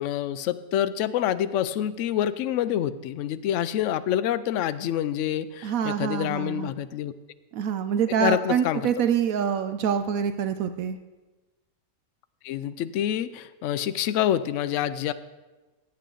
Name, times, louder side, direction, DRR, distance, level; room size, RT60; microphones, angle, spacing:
voice 1, 0.0-7.1 8.1-8.9 12.4-15.1, left 11 dB, 70° left, 13 dB, 0.8 m, -27 dB
voice 2, 5.6-6.7 7.5-11.0, right 8 dB, 75° right, 10 dB, 1.0 m, -26 dB
15.5 x 8.5 x 3.8 m, 1.2 s
omnidirectional pair, 1.6 m